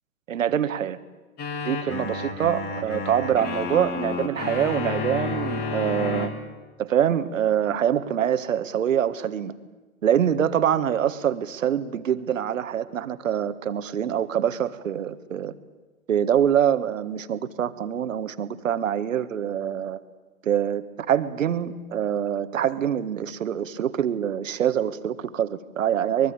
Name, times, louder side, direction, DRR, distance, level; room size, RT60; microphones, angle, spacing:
voice 1, 0.3-1.0 1.6-6.3 6.8-9.5 10.0-15.5 16.1-20.0 20.4-26.3, right 9 dB, 60° right, 13 dB, 1.5 m, -25 dB
sound 1, 1.4-6.3, left 4 dB, 20° left, 2.5 m, -30 dB
24.0 x 21.5 x 8.7 m, 1.2 s
hypercardioid pair, 130°, 43 cm